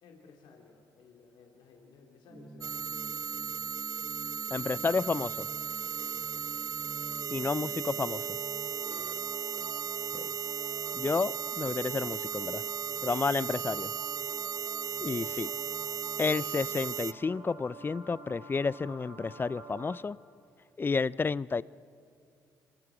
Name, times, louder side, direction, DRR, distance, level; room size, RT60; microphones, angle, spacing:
voice 1, 0.0-3.5 6.1-6.7 8.8-9.3, left 4 dB, 75° left, 1 dB, 2.6 m, -57 dB
sound 1, 2.3-20.0, right 3 dB, 90° right, 4.6 m, -48 dB
sound 2, 2.6-17.1, right 7 dB, 45° right, 0.5 m, -36 dB
voice 2, 4.5-5.5 7.3-8.4 10.1-10.3 10.9-12.6 13.0-13.9 15.0-15.5 16.2-20.2 20.8-21.6, left 4 dB, 25° left, 21 dB, 0.4 m, -31 dB
27.0 x 23.0 x 5.0 m, 2.5 s
supercardioid pair, 65°, 8 cm